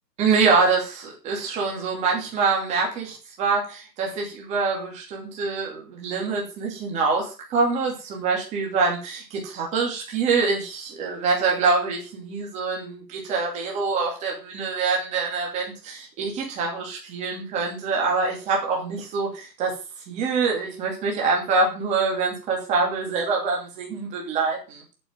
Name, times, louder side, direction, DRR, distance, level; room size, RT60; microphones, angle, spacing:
voice 1, 0.2-19.7 20.1-24.8, right 4 dB, 15° right, -1 dB, 2.6 m, -25 dB
8.9 x 6.5 x 7.4 m, 0.35 s
hypercardioid pair, 160°, 50 cm